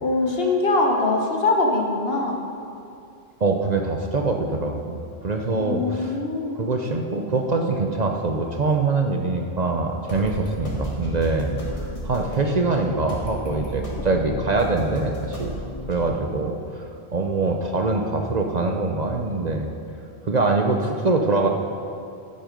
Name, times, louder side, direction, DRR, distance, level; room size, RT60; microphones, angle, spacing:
voice 1, 0.0-2.3 5.6-6.6, left 2 dB, 65° left, 1 dB, 1.4 m, -22 dB
voice 2, 3.4-6.2 6.5-15.6 15.9-19.7 20.2-21.5, right 3 dB, 45° right, 2 dB, 0.7 m, -24 dB
sound 1, 10.1-16.1, equal, 30° left, 1.8 m, -33 dB
11.5 x 7.9 x 5.2 m, 2.5 s
omnidirectional pair, 1.1 m